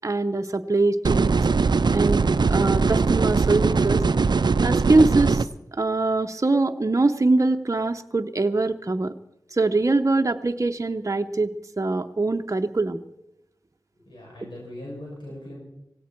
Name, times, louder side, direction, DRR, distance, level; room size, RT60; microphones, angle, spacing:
voice 1, 0.0-1.4 1.9-4.0 4.6-5.5 5.7-9.1 9.5-13.0, right 2 dB, 40° right, 6 dB, 0.8 m, -23 dB
sound 1, 1.0-5.4, right 4 dB, 70° right, 0.5 m, -21 dB
voice 2, 13.9-15.6, left 1 dB, 90° left, -4 dB, 7.5 m, -40 dB
17.5 x 17.0 x 4.5 m, 0.88 s
cardioid pair, 40°, 8 cm